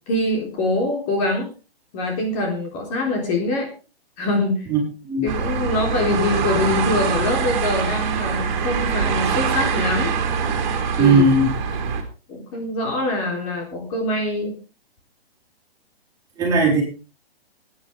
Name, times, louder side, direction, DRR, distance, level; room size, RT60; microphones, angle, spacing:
voice 1, 0.1-1.5 1.9-3.7 4.2-4.7 5.2-10.2 11.0-11.3 12.3-14.5, left 2 dB, 30° left, 1 dB, 3.8 m, -24 dB
sound 1, 5.3-12.0, right 6 dB, 30° right, 3.4 m, -23 dB
voice 2, 11.0-11.5 16.4-16.8, right 3 dB, 10° right, -3 dB, 5.4 m, -17 dB
17.5 x 10.5 x 3.7 m, 0.33 s
hypercardioid pair, 145°, 31 cm